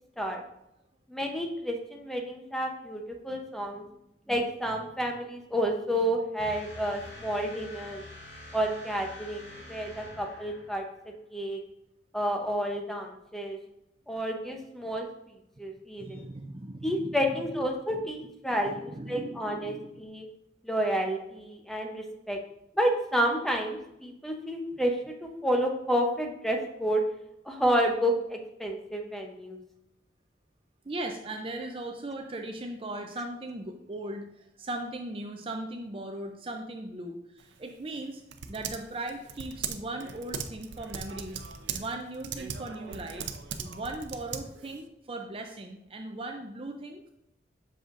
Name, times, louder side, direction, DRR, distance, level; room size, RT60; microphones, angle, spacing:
voice 1, 1.1-3.8 4.3-8.0 8.5-10.8 11.3-11.6 12.1-13.6 14.1-15.1 15.6-16.3 16.8-20.3 20.6-22.4 22.7-27.0 27.4-29.6, equal, ahead, 2 dB, 0.7 m, -30 dB
sound 1, 6.4-11.1, left 1 dB, 65° left, 2.5 m, -46 dB
voice 2, 16.0-17.3 17.9-18.1 18.6-20.0 30.8-38.2 38.5-43.3 43.6-47.1, right 2 dB, 30° right, 3 dB, 0.5 m, -38 dB
Typing, 37.4-44.8, right 6 dB, 90° right, 0.6 m, -39 dB
7.6 x 6.3 x 2.5 m, 0.82 s
head